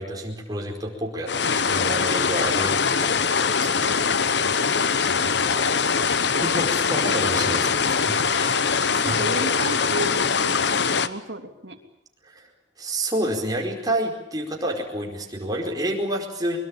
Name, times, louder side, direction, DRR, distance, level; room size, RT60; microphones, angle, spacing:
voice 1, 0.0-4.0 4.4-4.5 5.0-5.8 6.4-9.2 12.2-12.5 12.8-16.6, right 1 dB, 20° right, 0 dB, 4.7 m, -30 dB
sound 1, 1.3-11.1, left 5 dB, 60° left, 1.0 m, -22 dB
voice 2, 9.0-11.8, right 2 dB, 65° right, 4 dB, 3.2 m, -33 dB
23.0 x 22.5 x 9.0 m, 0.83 s
head